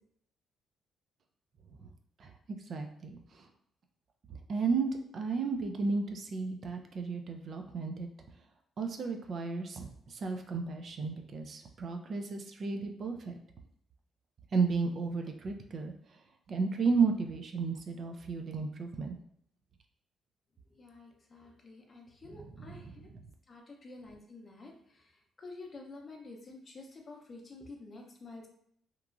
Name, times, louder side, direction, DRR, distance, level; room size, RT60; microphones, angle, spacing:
voice 1, 2.7-3.5 4.5-4.9 5.1-8.1 8.8-13.4 14.5-15.9 16.5-19.2 22.3-23.2, right 4 dB, 50° right, 4 dB, 0.3 m, -33 dB
voice 2, 20.8-22.8 23.5-25.0 25.4-28.5, left 3 dB, 35° left, 1 dB, 0.6 m, -49 dB
2.9 x 2.3 x 2.4 m, 0.68 s
cardioid pair, 90°, 0 cm